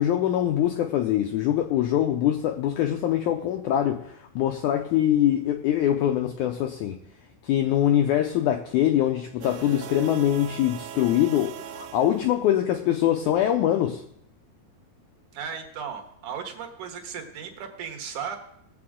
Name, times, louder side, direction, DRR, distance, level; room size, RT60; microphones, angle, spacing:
voice 1, 0.0-7.0 7.4-14.0, left 11 dB, 80° left, 1.7 m, -23 dB
sound 1, 9.4-12.6, right 11 dB, 85° right, 2.4 m, -40 dB
voice 2, 15.3-18.4, right 7 dB, 65° right, 2.5 m, -36 dB
19.0 x 7.8 x 3.7 m
omnidirectional pair, 4.1 m